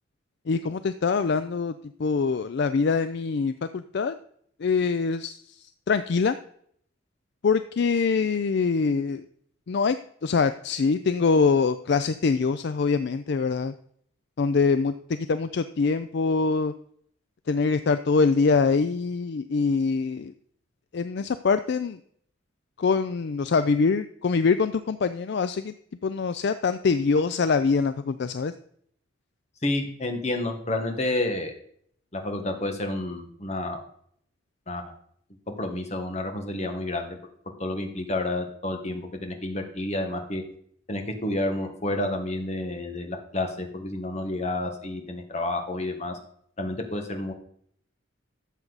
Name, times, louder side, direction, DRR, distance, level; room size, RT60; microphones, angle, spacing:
voice 1, 0.5-1.7 2.0-4.2 4.6-6.4 7.4-9.2 9.7-10.0 10.2-13.7 14.4-16.7 17.5-20.3 20.9-22.0 22.8-25.7 26.0-28.5, left 4 dB, 55° left, 12 dB, 0.4 m, -24 dB
voice 2, 29.6-31.5 32.1-33.8 34.7-34.9 35.5-37.2 37.6-40.4 40.9-46.2 46.6-47.3, left 2 dB, 35° left, 4 dB, 1.5 m, -30 dB
12.5 x 7.4 x 4.0 m, 0.64 s
head